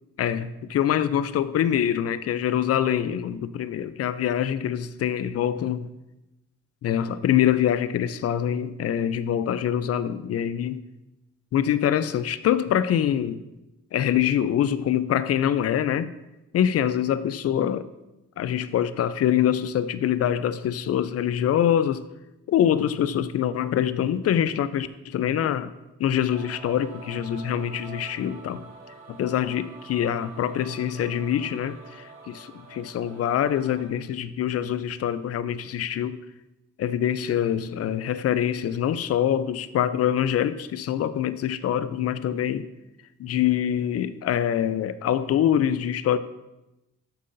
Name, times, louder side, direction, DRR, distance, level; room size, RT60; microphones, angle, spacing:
voice 1, 0.2-5.9 6.8-10.8 11.5-13.4 13.9-16.1 16.5-17.9 18.4-22.0 22.5-25.7 26.0-28.6 29.1-36.2 36.8-42.7 43.2-46.2, left 10 dB, 55° left, 0.5 m, -25 dB
sound 1, 26.3-33.9, right 3 dB, 45° right, 2.5 m, -45 dB
13.0 x 5.5 x 2.6 m
cardioid pair, 90°, 30 cm